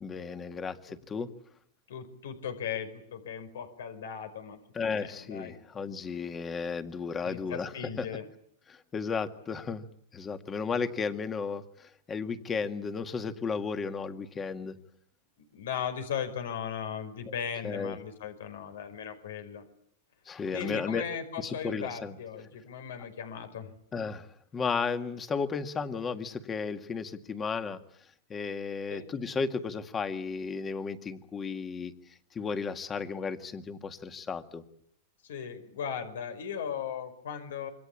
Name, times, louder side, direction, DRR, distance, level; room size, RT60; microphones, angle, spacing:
voice 1, 0.0-1.3 4.7-7.7 8.0-8.1 8.7-9.8 10.1-14.8 17.6-18.0 20.3-21.0 21.4-22.2 23.9-24.3 24.5-27.8 28.3-31.9 32.3-34.6, left 5 dB, 20° left, 9 dB, 1.9 m, -34 dB
voice 2, 1.9-4.6 4.8-5.6 7.2-8.3 15.5-19.6 20.5-23.7 28.9-29.1 35.2-37.7, left 7 dB, 90° left, 8 dB, 5.1 m, -37 dB
27.0 x 24.5 x 8.6 m, 0.67 s
supercardioid pair, 150°, 0 cm